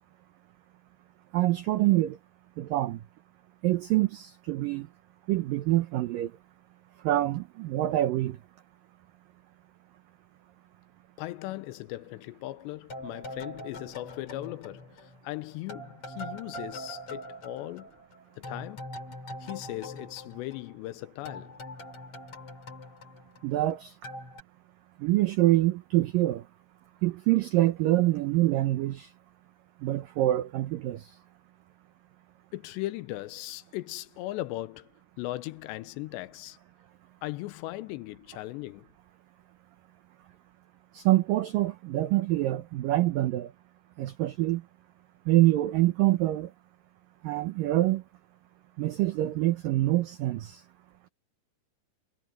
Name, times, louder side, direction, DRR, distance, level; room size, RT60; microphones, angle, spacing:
voice 1, 1.3-2.2 2.6-3.0 3.6-4.9 5.3-6.3 7.0-8.4 23.4-23.9 25.0-26.4 27.0-29.1 29.8-31.1 40.9-43.5 44.0-44.6 45.3-46.5 47.2-48.0 48.8-50.6, right 16 dB, 85° right, 1.9 m, -25 dB
voice 2, 11.2-17.9 18.4-18.9 19.4-21.6 32.5-34.9 35.2-36.6 37.2-38.9, left 17 dB, 85° left, 2.8 m, -38 dB
sound 1, 12.9-15.3 15.7-20.9 21.3-23.7 24.0-24.4, equal, 35° left, 4.1 m, -43 dB
omnidirectional pair, 5.1 m